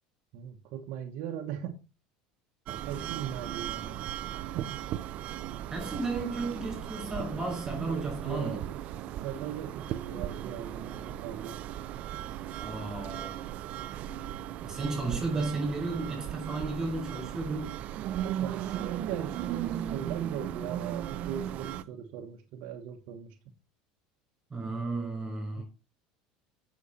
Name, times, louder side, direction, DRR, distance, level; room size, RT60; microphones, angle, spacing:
voice 1, 0.3-1.8 2.7-4.0 4.5-4.8 7.8-11.6 18.3-23.4 25.6-25.7, right 9 dB, 65° right, 1.2 m, -39 dB
sound 1, 2.7-21.8, right 11 dB, 50° right, 0.5 m, -37 dB
voice 2, 5.7-8.6 12.6-13.5 14.6-17.8 24.5-25.6, right 3 dB, 20° right, 5.9 m, -33 dB
8.2 x 6.4 x 4.1 m
supercardioid pair, 120°, 3 cm